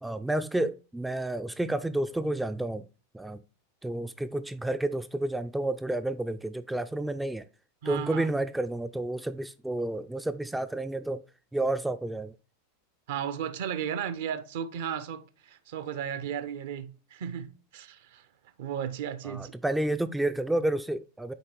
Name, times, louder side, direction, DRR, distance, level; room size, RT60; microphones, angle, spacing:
voice 1, 0.0-2.8 3.1-3.4 3.8-7.4 7.8-11.2 11.5-12.4 19.2-21.3, right 1 dB, 5° right, 0.4 m, -30 dB
voice 2, 7.8-8.3 13.1-18.3 18.6-19.5, right 9 dB, 60° right, 0.8 m, -35 dB
6.9 x 4.5 x 4.6 m
figure-of-eight pair, 90°, 0 cm